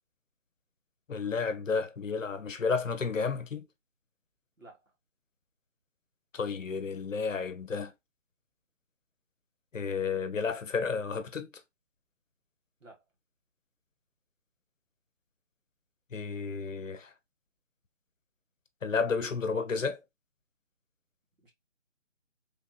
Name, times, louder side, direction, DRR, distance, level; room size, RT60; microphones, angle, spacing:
voice 1, 1.1-3.7 6.3-7.9 9.7-11.5 16.1-17.1 18.8-20.0, left 5 dB, 85° left, 0.7 m, -32 dB
voice 2, 4.6-4.9 12.8-13.0 19.1-19.7 21.4-21.5, right 2 dB, 90° right, 1.8 m, -50 dB
3.3 x 2.9 x 2.3 m
figure-of-eight pair, 160°, 38 cm